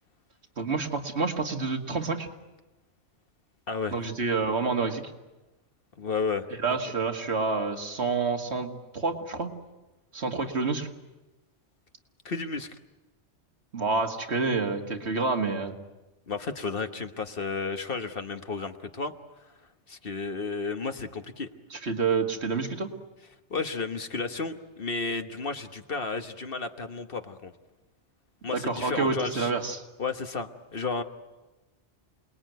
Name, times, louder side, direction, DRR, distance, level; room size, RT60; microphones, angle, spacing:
voice 1, 0.6-2.3 3.9-5.1 6.6-9.5 10.1-10.9 13.7-15.7 21.7-22.9 28.5-29.8, right 4 dB, 65° right, 4 dB, 2.2 m, -28 dB
voice 2, 3.7-4.0 6.0-6.5 12.2-12.8 16.3-19.1 19.9-21.5 23.5-27.5 28.4-29.5 30.0-31.0, left 4 dB, 50° left, 7 dB, 1.4 m, -32 dB
28.0 x 20.5 x 9.3 m, 1.1 s
omnidirectional pair, 1.2 m